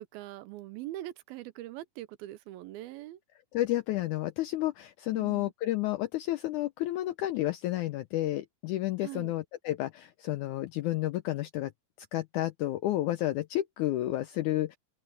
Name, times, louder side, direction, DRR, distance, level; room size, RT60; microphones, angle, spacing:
voice 1, 0.0-3.2 5.1-5.5 9.0-9.3, right 15 dB, 85° right, 2.7 m, -42 dB
voice 2, 3.5-11.7 12.1-14.8, left 15 dB, 85° left, 1.7 m, -31 dB
open air
omnidirectional pair, 4.2 m